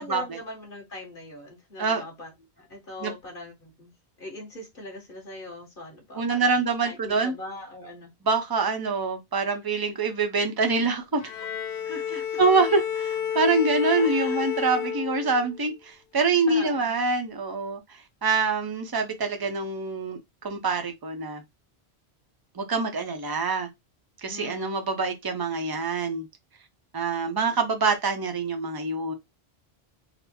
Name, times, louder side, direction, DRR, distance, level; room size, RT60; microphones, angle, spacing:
voice 1, 0.0-2.3 2.6-3.9 4.2-8.1 11.8-12.4 14.0-14.5 16.5-16.9 24.3-24.7, left 1 dB, 55° left, 1.7 m, -41 dB
voice 2, 6.1-7.3 8.2-11.5 12.4-21.4 22.5-23.7 24.2-26.3 26.9-29.1, right 4 dB, 25° right, 0.6 m, -25 dB
Bowed string instrument, 11.2-15.6, left 9 dB, 80° left, 0.9 m, -30 dB
4.2 x 2.0 x 4.3 m
omnidirectional pair, 1.1 m